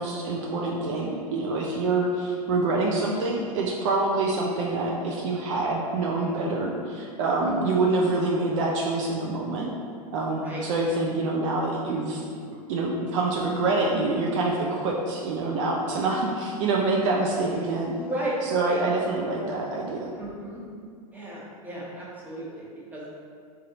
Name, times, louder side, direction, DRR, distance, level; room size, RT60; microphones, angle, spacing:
voice 1, 0.0-9.7 10.1-12.2 12.5-18.0 18.4-20.1, right 3 dB, 55° right, -2 dB, 0.5 m, -26 dB
voice 2, 7.4-7.8 10.2-10.7 17.9-18.3 18.6-18.8 20.1-20.6 21.1-23.1, right 1 dB, 10° right, -7 dB, 1.1 m, -35 dB
4.2 x 2.6 x 3.8 m, 2.2 s
figure-of-eight pair, 95°, 20 cm